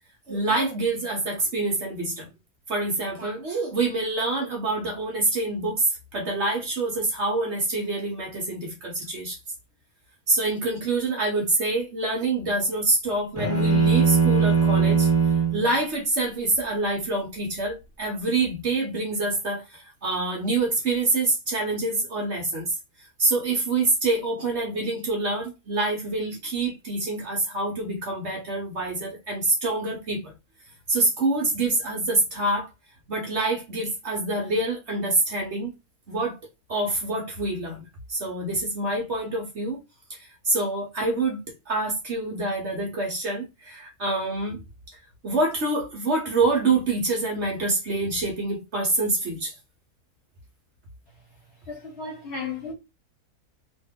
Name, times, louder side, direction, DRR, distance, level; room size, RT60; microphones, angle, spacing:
voice 1, 0.3-2.3 2.7-9.4 10.3-15.1 15.5-22.7 23.2-30.3 30.9-32.7 33.1-35.7 36.1-36.4 36.7-37.8 38.1-39.8 40.1-40.2 40.4-41.4 41.7-44.6 45.2-49.5, right 2 dB, 50° right, 1.1 m, -26 dB
sound 1, 13.4-15.6, right 5 dB, 15° left, 1.9 m, -20 dB
voice 2, 51.7-52.7, left 4 dB, 45° left, 1.5 m, -34 dB
3.1 x 2.6 x 3.6 m
omnidirectional pair, 1.6 m